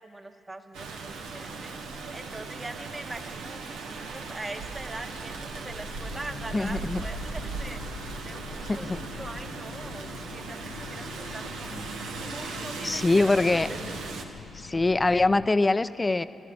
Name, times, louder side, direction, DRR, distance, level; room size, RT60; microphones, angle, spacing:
voice 1, 0.0-1.8 2.1-7.8 8.2-11.8 12.2-14.3, right 2 dB, 25° right, 7 dB, 1.1 m, -42 dB
Rain, 0.7-14.2, right 4 dB, 90° right, 1.1 m, -38 dB
sound 1, 5.3-15.5, left 8 dB, 85° left, 0.4 m, -45 dB
voice 2, 6.5-7.0 8.7-9.0 12.8-13.7 14.5-16.2, left 2 dB, 25° left, 14 dB, 0.5 m, -23 dB
11.5 x 11.5 x 9.9 m, 2.7 s
supercardioid pair, 55°, 0 cm